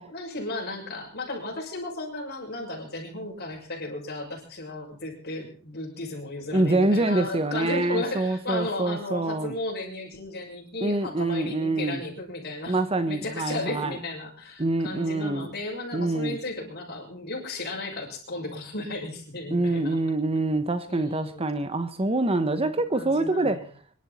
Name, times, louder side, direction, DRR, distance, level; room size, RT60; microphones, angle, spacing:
voice 1, 0.0-12.8 13.1-20.0 20.9-21.5 22.4-23.7, left 2 dB, 45° left, 6.4 m, -35 dB
voice 2, 6.5-9.5 10.8-12.0 12.7-13.9 14.6-15.5 15.9-16.4 19.5-23.6, right 2 dB, 25° right, 0.9 m, -25 dB
25.5 x 12.0 x 4.2 m
head